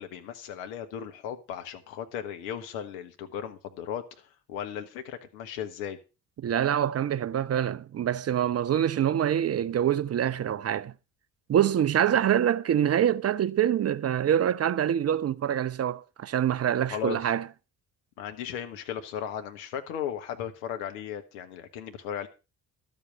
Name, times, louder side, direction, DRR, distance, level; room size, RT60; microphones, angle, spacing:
voice 1, 0.0-6.0 16.9-17.2 18.2-22.3, left 9 dB, 70° left, 1.4 m, -36 dB
voice 2, 6.4-10.9 11.5-17.5, right 10 dB, 30° right, 0.7 m, -25 dB
12.5 x 7.7 x 5.4 m
figure-of-eight pair, 45°, 47 cm